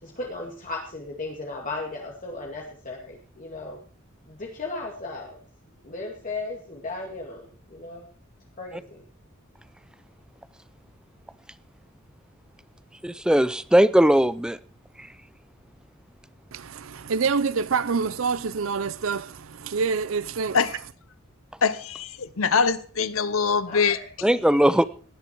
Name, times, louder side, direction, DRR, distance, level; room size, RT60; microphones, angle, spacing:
voice 1, 0.0-3.8 4.3-5.4 5.8-8.1 8.6-9.0 23.7-24.0 24.3-24.9, left 3 dB, 40° left, 2.4 m, -36 dB
voice 2, 13.0-14.6 24.2-24.8, equal, 5° right, 0.5 m, -19 dB
voice 3, 16.5-20.6, right 5 dB, 70° right, 0.6 m, -26 dB
voice 4, 21.6-24.0, left 5 dB, 75° left, 0.8 m, -23 dB
18.0 x 11.0 x 4.6 m
head